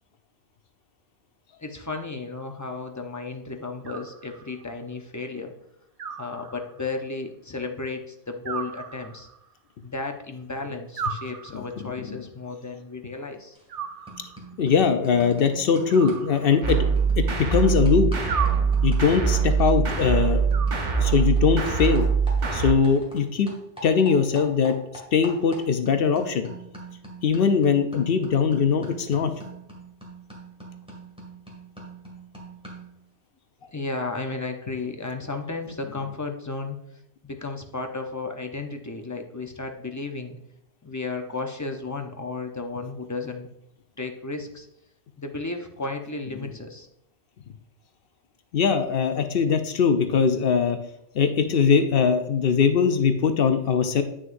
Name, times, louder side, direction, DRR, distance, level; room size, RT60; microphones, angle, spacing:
voice 1, 1.6-5.5 6.2-9.3 9.8-13.6 33.7-36.8 37.2-40.4 40.8-43.5 44.0-44.7 45.2-46.9, left 3 dB, 20° left, 4 dB, 0.5 m, -33 dB
Animal, 3.8-4.7 6.0-7.0 8.5-9.5 11.0-12.0 13.7-14.6 15.9-17.0 18.3-19.2 20.5-21.4, right 7 dB, 75° right, 0.3 m, -36 dB
sound 1, 13.6-13.8 14.1-23.2 23.5-33.0, right 2 dB, 5° right, 2.0 m, -43 dB
voice 2, 14.6-16.9 17.2-18.1 18.8-20.4 21.0-22.1 22.5-23.5 23.8-24.8 25.1-26.5 27.2-29.3 48.5-50.8 51.1-54.0, left 6 dB, 60° left, 8 dB, 0.7 m, -21 dB
sound 2, 16.6-22.7, right 5 dB, 45° right, 0.9 m, -23 dB
9.3 x 6.2 x 2.5 m, 0.81 s
omnidirectional pair, 1.2 m